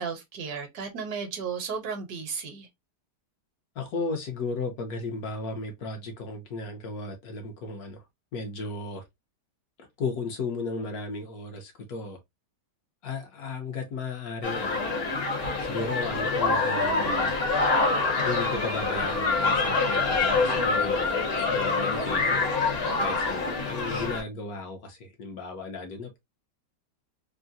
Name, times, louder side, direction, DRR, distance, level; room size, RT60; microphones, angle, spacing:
voice 1, 0.0-2.7, right 6 dB, 70° right, 1.2 m, -34 dB
voice 2, 3.8-8.0 8.3-9.0 10.0-12.2 13.0-14.8 15.6-17.3 18.2-22.5 23.0-26.2, left 3 dB, 65° left, 1.3 m, -35 dB
sound 1, 14.4-24.2, left 3 dB, 45° left, 1.0 m, -26 dB
3.6 x 2.1 x 2.6 m
omnidirectional pair, 1.8 m